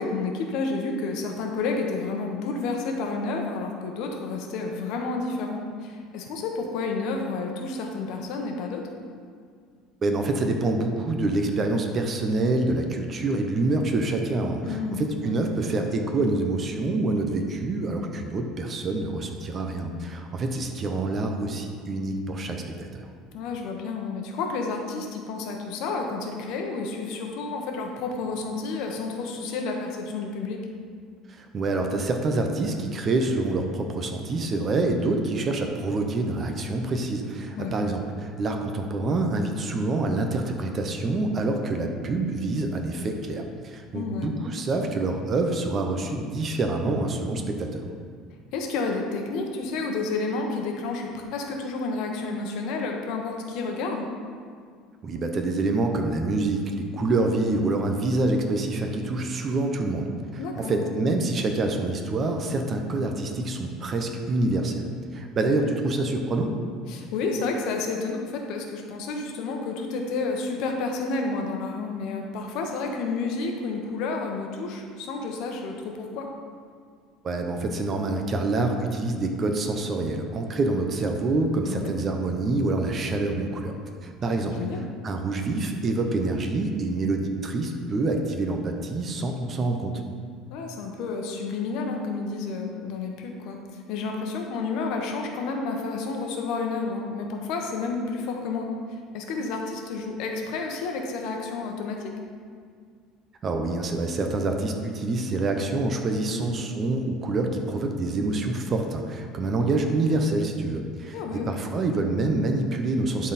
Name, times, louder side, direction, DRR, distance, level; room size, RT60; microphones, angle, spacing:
voice 1, 0.0-8.8 14.7-15.3 23.3-30.6 37.6-37.7 43.9-44.3 48.5-54.1 60.4-60.9 66.9-76.3 81.6-81.9 84.2-84.9 90.5-102.1 106.2-106.5 111.1-111.5, left 3 dB, 65° left, 2 dB, 1.1 m, -30 dB
voice 2, 10.0-23.1 31.3-47.8 55.0-64.9 65.1-66.6 77.2-83.8 84.0-84.6 85.0-90.0 103.4-113.3, right 2 dB, 30° right, 4 dB, 0.7 m, -26 dB
11.0 x 4.2 x 4.2 m, 2.1 s
cardioid pair, 145°, 0 cm